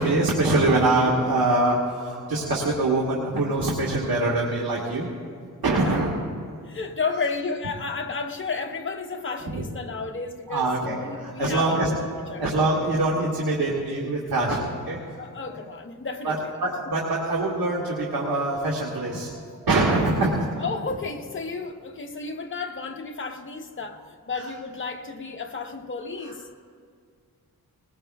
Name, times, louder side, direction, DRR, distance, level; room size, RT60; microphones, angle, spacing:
voice 1, 0.0-5.1 5.6-6.1 9.5-9.7 10.5-11.9 12.4-15.0 16.2-16.4 16.6-20.4, right 2 dB, 85° right, -3 dB, 1.9 m, -24 dB
voice 2, 6.6-11.9 12.3-12.4 15.2-16.5 20.6-26.5, left 4 dB, 35° left, 3 dB, 0.9 m, -32 dB
20.0 x 20.0 x 2.3 m, 2.1 s
wide cardioid pair, 135°, 35 cm